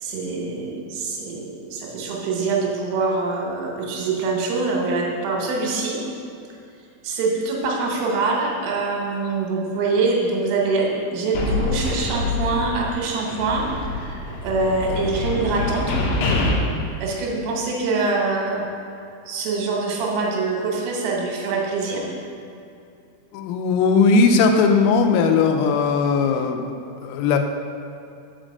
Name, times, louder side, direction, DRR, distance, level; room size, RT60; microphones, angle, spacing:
voice 1, 0.0-6.0 7.0-16.1 17.0-18.6 19.3-22.1, right 3 dB, 80° right, -1 dB, 3.6 m, -24 dB
sound 1, 11.3-13.0 13.3-16.5, left 3 dB, 75° left, 2.5 m, -25 dB
voice 2, 23.3-26.7 27.0-27.4, left 4 dB, 90° left, 5 dB, 3.3 m, -18 dB
6.3 x 5.8 x 6.3 m, 2.6 s
omnidirectional pair, 5.8 m